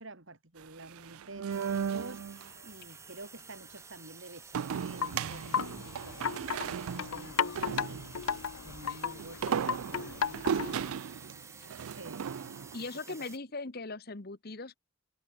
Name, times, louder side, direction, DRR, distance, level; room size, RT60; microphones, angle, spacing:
voice 1, 0.0-11.0 11.3-13.3, right 2 dB, 65° right, 3.1 m, -50 dB
sound 1, 0.6-2.5 4.5-8.4 9.2-12.8, right 7 dB, 90° right, 0.4 m, -36 dB
sound 2, 1.5-13.4, right 4 dB, 15° right, 2.2 m, -52 dB
Wind chime, 4.7-10.9, left 7 dB, 85° left, 0.7 m, -35 dB
voice 2, 12.7-14.8, left 3 dB, 45° left, 1.2 m, -39 dB
head